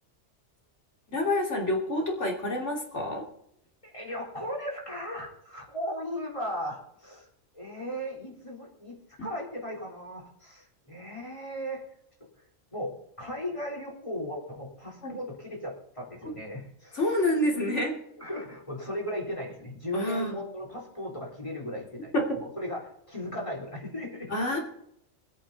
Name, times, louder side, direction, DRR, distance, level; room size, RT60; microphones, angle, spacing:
voice 1, 1.1-3.3 9.2-9.3 15.0-15.2 16.9-18.0 19.9-20.4 22.1-22.2 24.3-24.6, left 1 dB, 75° left, 0 dB, 3.2 m, -28 dB
voice 2, 3.8-7.3 7.5-11.8 12.7-17.0 18.2-24.4, equal, 25° left, -1 dB, 3.9 m, -37 dB
22.0 x 8.8 x 4.1 m, 0.74 s
omnidirectional pair, 1.2 m